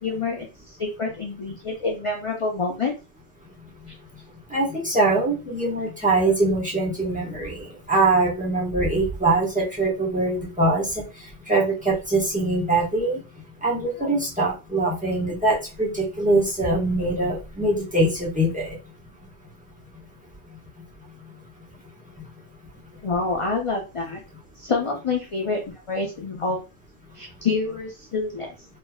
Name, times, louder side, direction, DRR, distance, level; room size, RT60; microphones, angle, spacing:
voice 1, 0.0-2.9 6.2-6.3 14.0-14.2 23.0-24.2 24.6-25.6 25.9-26.6 27.1-28.5, left 4 dB, 45° left, 1 dB, 0.4 m, -27 dB
voice 2, 4.5-11.0 11.5-13.2 13.6-18.7, right 2 dB, 5° right, -3 dB, 1.1 m, -23 dB
3.5 x 3.1 x 2.3 m, 0.30 s
omnidirectional pair, 1.3 m